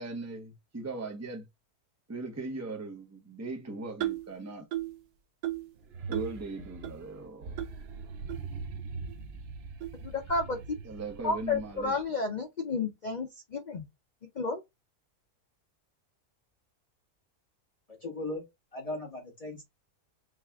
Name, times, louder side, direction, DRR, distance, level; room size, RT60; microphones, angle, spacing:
voice 1, 0.0-1.5 2.1-4.7 6.1-7.5 10.8-12.0, right 3 dB, 15° right, 0.7 m, -39 dB
sound 1, 4.0-4.3 4.7-5.0 5.4-5.7 6.1-6.4 6.8-6.9 7.6-7.7 8.3-8.4 9.1-9.2 9.8-10.0, right 14 dB, 90° right, 1.3 m, -34 dB
sound 2, 5.8-12.1, right 4 dB, 55° right, 0.8 m, -42 dB
voice 2, 10.0-10.6 11.2-13.9 14.4-14.6, left 3 dB, 85° left, 0.4 m, -31 dB
voice 3, 18.0-18.4 18.7-19.6, left 2 dB, 25° left, 1.3 m, -37 dB
5.1 x 2.4 x 3.4 m
omnidirectional pair, 1.6 m